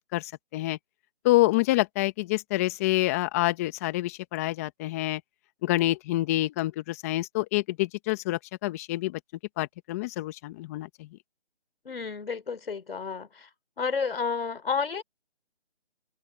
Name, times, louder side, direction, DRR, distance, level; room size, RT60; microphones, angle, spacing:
voice 1, 0.1-0.8 1.2-5.2 5.6-9.2 9.6-11.1, left 18 dB, 15° left, 1.7 m, -27 dB
voice 2, 11.9-13.5 13.8-15.0, left 5 dB, 60° left, 4.1 m, -31 dB
hypercardioid pair, 165°, 33 cm